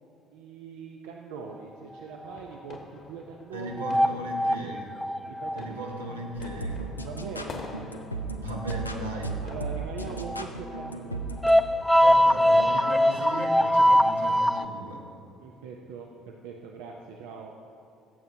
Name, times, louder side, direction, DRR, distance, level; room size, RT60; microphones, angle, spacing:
voice 1, 0.3-4.6 5.3-6.0 7.0-7.6 9.4-11.2 15.4-17.5, right 5 dB, 65° right, 1 dB, 0.6 m, -41 dB
sound 1, 2.2-13.1, left 3 dB, 40° left, 1.2 m, -48 dB
voice 2, 3.5-5.0 5.5-6.8 8.3-9.4 12.0-15.1, right 1 dB, 80° right, -1 dB, 1.1 m, -37 dB
sound 2, 3.8-5.8 8.7-8.8 10.3-10.4 10.8-10.9 11.4-14.6, equal, ahead, 0.3 m, -21 dB
sound 3, 6.3-11.6, right 2 dB, 90° left, 0.4 m, -35 dB
16.5 x 7.8 x 2.8 m, 2.5 s
figure-of-eight pair, 55°, 0 cm